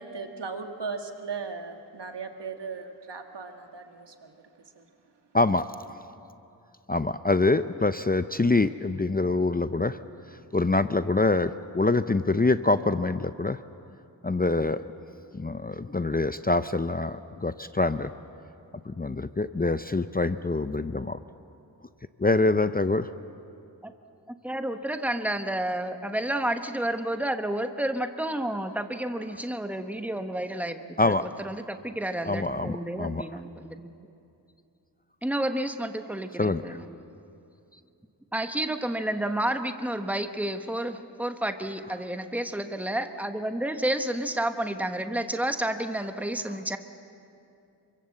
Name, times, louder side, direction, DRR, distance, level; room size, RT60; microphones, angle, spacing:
voice 1, 0.0-4.3 4.8-4.9, right 4 dB, 75° right, 5 dB, 1.9 m, -37 dB
voice 2, 5.3-5.7 6.9-10.0 10.5-13.6 14.2-14.8 15.3-18.1 18.9-21.2 22.2-23.1 31.0-31.2 32.2-33.2 36.4-36.8, left 2 dB, 20° left, 12 dB, 0.6 m, -25 dB
voice 3, 24.4-33.9 35.2-36.9 38.3-46.8, right 1 dB, 5° right, 7 dB, 1.2 m, -30 dB
26.5 x 24.0 x 7.8 m, 2.6 s
wide cardioid pair, 95°, 41 cm